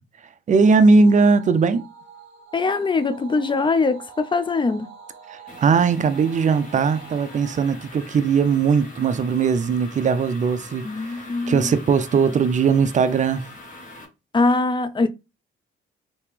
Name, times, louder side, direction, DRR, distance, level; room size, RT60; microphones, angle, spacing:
voice 1, 0.5-1.8 5.3-11.2 11.5-13.4, right 5 dB, 40° right, 0.5 m, -19 dB
sound 1, 0.5-9.1, right 6 dB, 65° right, 1.3 m, -45 dB
voice 2, 2.5-4.9 10.8-11.7 14.3-15.1, left 3 dB, 25° left, 0.5 m, -22 dB
sound 2, 5.5-14.0, left 2 dB, 40° left, 1.4 m, -43 dB
3.2 x 2.8 x 3.4 m
cardioid pair, 90°, 20 cm